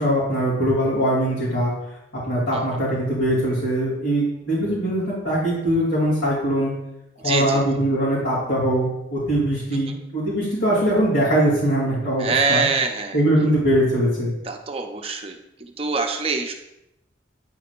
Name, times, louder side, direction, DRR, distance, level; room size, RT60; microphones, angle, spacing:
voice 1, 0.0-1.7 2.3-6.7 7.2-12.7 13.1-14.3, right 1 dB, 75° left, -9 dB, 2.8 m, -21 dB
voice 2, 7.2-7.6 9.9-10.0 12.2-13.2 14.5-16.5, right 4 dB, 30° right, 4 dB, 0.7 m, -24 dB
9.3 x 6.4 x 2.5 m, 0.87 s
head